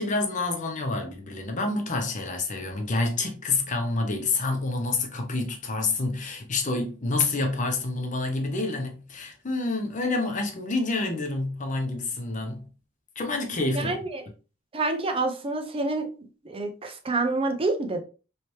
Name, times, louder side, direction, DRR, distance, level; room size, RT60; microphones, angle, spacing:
voice 1, 0.0-12.7 13.2-14.0, left 3 dB, 40° left, 0.7 m, -28 dB
voice 2, 13.7-14.3 14.7-16.1 16.4-18.0, right 3 dB, 30° right, 0.5 m, -27 dB
3.2 x 2.9 x 3.1 m
head